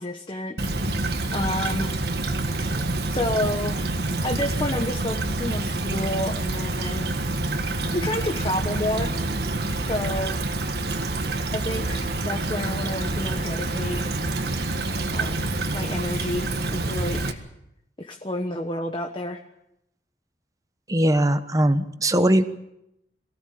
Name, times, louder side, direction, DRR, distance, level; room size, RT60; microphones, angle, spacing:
voice 1, 0.0-2.0 3.1-7.1 7.9-9.1 9.8-10.4 11.5-14.0 15.1-17.4 18.0-19.4, left 1 dB, 30° left, 4 dB, 1.2 m, -30 dB
Stream / Trickle dribble, 0.6-17.3, right 2 dB, 65° right, 1.7 m, -27 dB
voice 2, 20.9-22.4, right 1 dB, 20° right, 10 dB, 1.1 m, -20 dB
23.0 x 16.5 x 8.6 m, 0.84 s
head